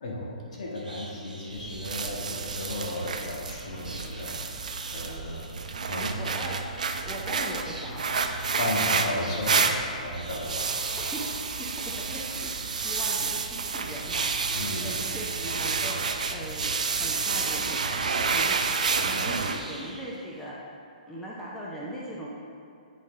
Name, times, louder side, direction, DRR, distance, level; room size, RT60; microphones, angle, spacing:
voice 1, 0.0-4.6 4.9-5.5 5.9-6.2 8.6-9.6 9.9-10.7 14.5-14.9, left 1 dB, 55° left, -3 dB, 1.6 m, -34 dB
sound 1, 0.7-20.5, right 2 dB, 85° right, 0.9 m, -47 dB
sound 2, 1.5-19.6, right 5 dB, 70° right, 0.5 m, -30 dB
voice 2, 6.1-8.3 8.9-9.1 11.0-11.3 11.6-18.0 18.3-18.7 19.0-20.7 21.0-22.3, equal, 5° left, -5 dB, 0.7 m, -39 dB
9.0 x 4.2 x 3.3 m, 2.4 s
figure-of-eight pair, 125°, 4 cm